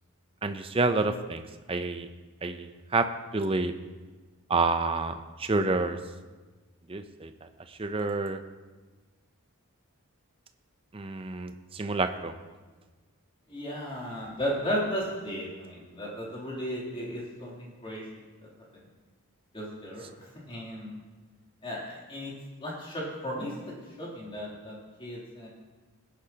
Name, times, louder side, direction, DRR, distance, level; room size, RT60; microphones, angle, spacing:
voice 1, 0.4-1.4 1.7-2.1 2.4-3.1 3.3-3.7 4.5-6.0 6.9-7.3 7.7-8.4 10.9-12.3, right 3 dB, 25° right, 8 dB, 0.6 m, -28 dB
voice 2, 13.5-18.8 19.5-21.0 21.6-22.3 22.6-25.5, equal, 25° left, -5 dB, 3.1 m, -35 dB
18.5 x 10.5 x 2.9 m, 1.3 s
head